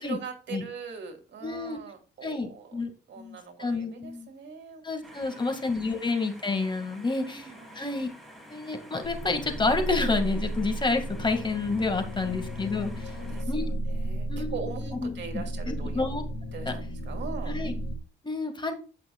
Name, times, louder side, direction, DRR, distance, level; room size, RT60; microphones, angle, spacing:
voice 1, 0.0-6.0 7.1-7.9 11.9-12.4 13.1-16.0 16.5-17.6, right 6 dB, 65° right, 5 dB, 2.4 m, -42 dB
voice 2, 1.4-1.8 2.2-2.9 3.2-4.3 4.8-7.4 7.8-8.1 8.5-13.2 13.5-13.7 14.3-14.6 14.9-16.2 16.7-16.8 17.5-17.7 18.2-18.7, left 3 dB, 25° left, 6 dB, 1.9 m, -29 dB
sound 1, 5.0-13.4, equal, ahead, 2.5 m, -49 dB
sound 2, 9.0-18.0, right 1 dB, 60° left, 1.8 m, -34 dB
15.0 x 6.0 x 2.3 m, 0.37 s
cardioid pair, 90°, 20 cm